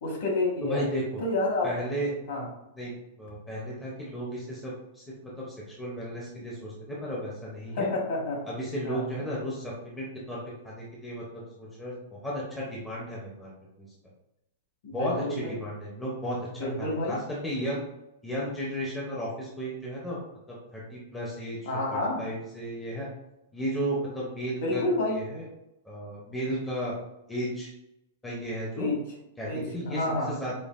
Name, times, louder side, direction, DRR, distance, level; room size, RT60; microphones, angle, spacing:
voice 1, 0.0-0.8 1.2-1.7 2.3-2.5 7.7-8.4 8.8-9.1 14.8-15.5 16.6-17.2 21.6-22.2 24.6-25.2 28.8-29.0 29.5-30.3, left 2 dB, 50° left, -2 dB, 1.2 m, -29 dB
voice 2, 0.6-1.2 1.6-2.1 2.8-7.9 8.4-13.5 13.8-13.9 14.9-17.8 18.2-20.2 20.5-21.6 21.9-23.1 23.5-24.8 25.1-25.5 25.8-27.0 27.3-27.7 28.2-28.9 29.4-30.0 30.3-30.5, equal, 5° left, -6 dB, 0.5 m, -34 dB
5.1 x 2.3 x 2.4 m, 0.87 s
supercardioid pair, 175°, 0 cm